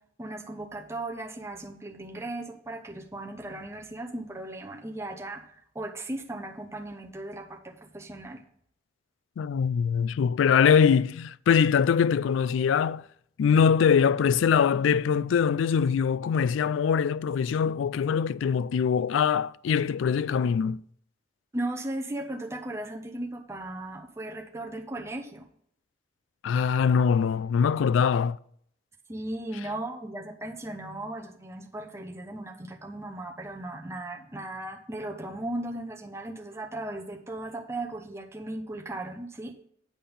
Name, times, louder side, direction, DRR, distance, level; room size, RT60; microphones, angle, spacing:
voice 1, 0.2-8.4 21.5-25.5 29.1-39.5, right 1 dB, 15° right, 0.7 m, -37 dB
voice 2, 9.4-13.0 13.4-20.8 26.4-28.4, left 7 dB, 75° left, 0.3 m, -23 dB
8.5 x 3.8 x 6.9 m
head